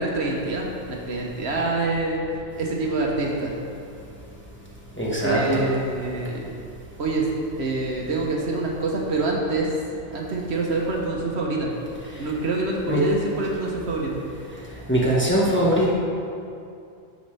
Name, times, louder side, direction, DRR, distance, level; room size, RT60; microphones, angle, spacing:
voice 1, 0.0-2.2 2.5-3.5 5.2-6.5 7.0-7.3 7.6-9.7 10.1-11.7 12.2-14.2, right 3 dB, 70° right, -1 dB, 1.2 m, -26 dB
voice 2, 5.0-5.6 12.9-13.0 14.9-15.9, right 1 dB, 10° left, -6 dB, 1.3 m, -21 dB
9.2 x 6.4 x 3.3 m, 2.5 s
omnidirectional pair, 1.2 m